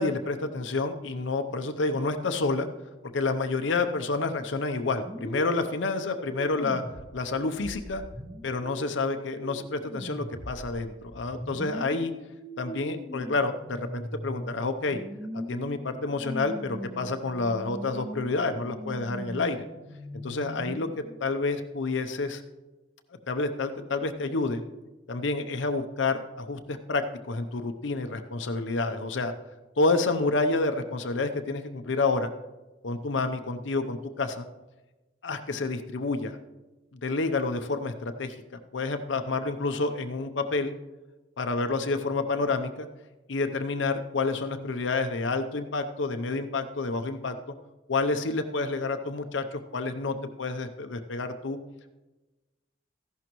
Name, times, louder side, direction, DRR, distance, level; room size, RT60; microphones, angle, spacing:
voice 1, 0.0-2.7 3.1-6.8 7.1-8.0 8.4-12.1 12.6-15.0 15.5-19.6 20.2-22.4 23.3-24.6 25.1-29.3 29.8-32.3 32.8-34.5 35.2-36.4 36.9-38.3 38.7-40.7 41.4-42.9 43.3-47.4 47.9-51.6, left 3 dB, 80° left, 7 dB, 0.7 m, -29 dB
sound 1, 5.0-21.2, equal, 35° right, 1.7 m, -40 dB
14.5 x 11.0 x 3.1 m, 1.1 s
head